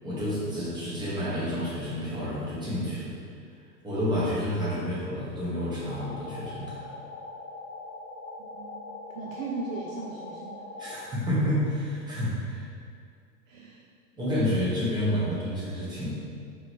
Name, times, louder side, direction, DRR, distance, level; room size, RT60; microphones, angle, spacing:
voice 1, 0.0-3.1 3.8-6.8 10.8-12.7 14.1-16.1, equal, 10° right, -9 dB, 1.1 m, -29 dB
sound 1, 5.8-11.1, left 3 dB, 40° left, 0.6 m, -42 dB
voice 2, 8.4-10.7 13.5-13.8, right 3 dB, 55° right, -2 dB, 0.5 m, -38 dB
3.7 x 3.1 x 3.3 m, 2.2 s
hypercardioid pair, 125°, 49 cm